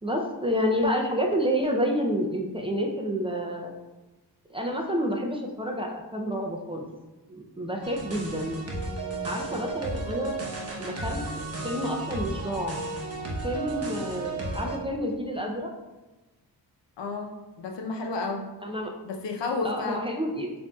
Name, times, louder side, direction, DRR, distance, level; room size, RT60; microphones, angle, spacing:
voice 1, 0.0-3.7 4.5-6.9 7.3-8.6 9.2-10.4 10.8-11.2 11.6-12.8 13.4-15.7 18.6-18.9 19.6-20.5, equal, 15° right, 0 dB, 0.4 m, -29 dB
sound 1, 7.8-14.8, right 2 dB, 35° right, 0.9 m, -34 dB
voice 2, 17.0-18.4 19.0-20.0, left 3 dB, 80° left, 2 dB, 0.7 m, -31 dB
7.1 x 2.7 x 2.3 m, 1.1 s
cardioid pair, 100°, 43 cm